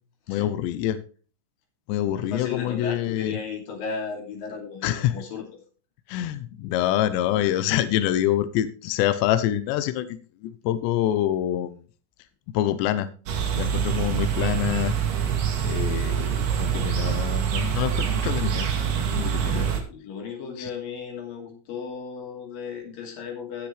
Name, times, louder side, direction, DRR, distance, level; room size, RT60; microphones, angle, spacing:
voice 1, 0.3-1.0 1.9-3.4 4.8-5.1 6.1-11.8 12.5-13.1 13.6-15.0 15.6-18.7 19.1-19.7 20.6-20.7, left 12 dB, 80° left, 12 dB, 3.0 m, -26 dB
voice 2, 2.1-5.4 7.3-7.8 13.7-14.0 19.1-23.7, left 6 dB, 55° left, 1 dB, 4.1 m, -36 dB
sound 1, 13.3-19.8, right 8 dB, 65° right, 3.7 m, -25 dB
18.0 x 6.7 x 3.3 m, 0.37 s
omnidirectional pair, 5.0 m